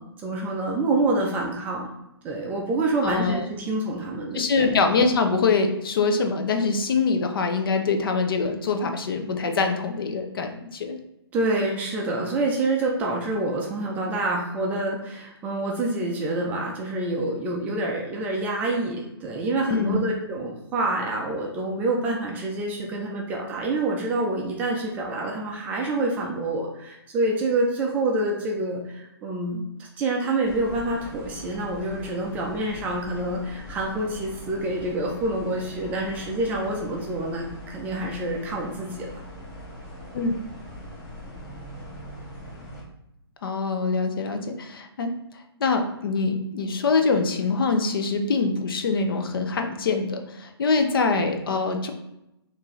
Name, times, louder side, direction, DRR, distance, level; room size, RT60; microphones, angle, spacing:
voice 1, 0.0-1.9 2.2-4.7 11.3-39.2, right 2 dB, 10° right, -1 dB, 0.4 m, -27 dB
voice 2, 3.0-3.5 4.3-11.0 19.7-20.1 40.1-40.3 43.4-45.1 45.6-51.9, left 4 dB, 55° left, 5 dB, 0.5 m, -24 dB
sound 1, 30.4-42.8, equal, 20° left, 0.9 m, -41 dB
4.3 x 2.6 x 3.1 m, 0.87 s
hypercardioid pair, 140°, 14 cm